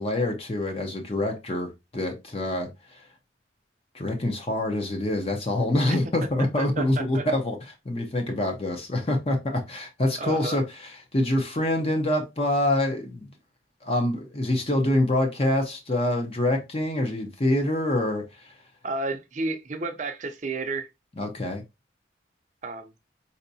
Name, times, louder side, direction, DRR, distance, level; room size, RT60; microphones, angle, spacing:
voice 1, 0.0-3.1 3.9-7.6 7.8-13.3 13.8-18.6 21.2-21.6, left 1 dB, 30° left, 0.7 m, -26 dB
voice 2, 6.6-7.2 10.2-10.6 18.8-20.9 22.6-22.9, right 3 dB, 40° right, 0.5 m, -31 dB
4.5 x 2.8 x 2.7 m
head